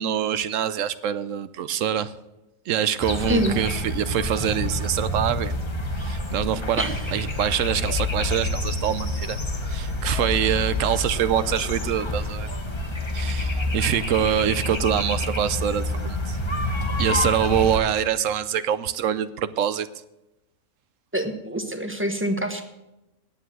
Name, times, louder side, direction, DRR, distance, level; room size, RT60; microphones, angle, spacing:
voice 1, 0.0-2.1 2.7-5.5 6.0-9.4 9.7-12.5 13.1-16.4 17.0-19.9, right 9 dB, 70° right, 14 dB, 0.9 m, -25 dB
sound 1, 3.0-17.8, left 1 dB, 25° left, 0.9 m, -28 dB
voice 2, 21.1-22.6, right 1 dB, 10° right, 6 dB, 1.0 m, -25 dB
10.0 x 8.3 x 7.5 m, 0.96 s
omnidirectional pair, 1.5 m